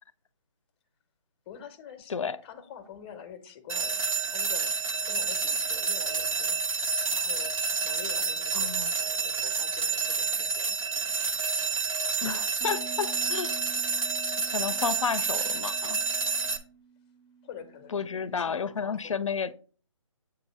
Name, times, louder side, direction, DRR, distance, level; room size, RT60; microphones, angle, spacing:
voice 1, 1.5-2.2 2.4-4.0 4.3-4.7 5.0-6.6 7.1-7.5 7.8-10.8 17.4-19.3, left 8 dB, 20° left, 0.6 m, -46 dB
sound 1, 3.7-16.6, right 4 dB, 80° right, 0.9 m, -29 dB
voice 2, 8.5-8.9 12.2-13.5 14.5-16.0 17.9-19.5, left 6 dB, 70° left, 0.5 m, -31 dB
Bass guitar, 12.6-18.9, right 6 dB, 40° right, 0.5 m, -50 dB
7.7 x 2.7 x 5.4 m
figure-of-eight pair, 155°, 17 cm